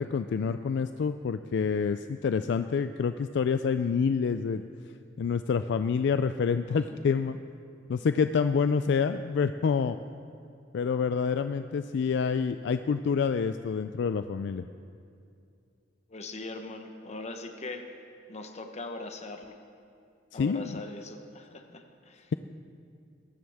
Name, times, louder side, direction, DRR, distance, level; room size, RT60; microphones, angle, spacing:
voice 1, 0.0-4.6 5.2-7.4 7.9-10.0 10.7-14.6 20.3-20.8, left 6 dB, 60° left, 10 dB, 0.3 m, -27 dB
voice 2, 6.7-7.2 16.1-18.0 18.3-19.6 20.3-22.3, left 2 dB, 35° left, 6 dB, 1.0 m, -41 dB
21.5 x 12.5 x 3.5 m, 2.4 s
head